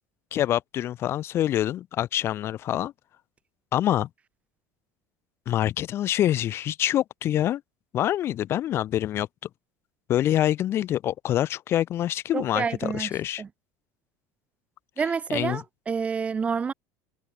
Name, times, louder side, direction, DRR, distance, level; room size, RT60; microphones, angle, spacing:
voice 1, 0.3-2.9 3.7-4.1 5.5-7.6 7.9-9.3 10.1-13.4 15.3-15.6, left 12 dB, 40° left, 1.8 m, -25 dB
voice 2, 12.3-13.1 13.4-13.5 15.0-16.7, right 6 dB, 20° right, 1.6 m, -28 dB
cardioid pair, 155°, 7 cm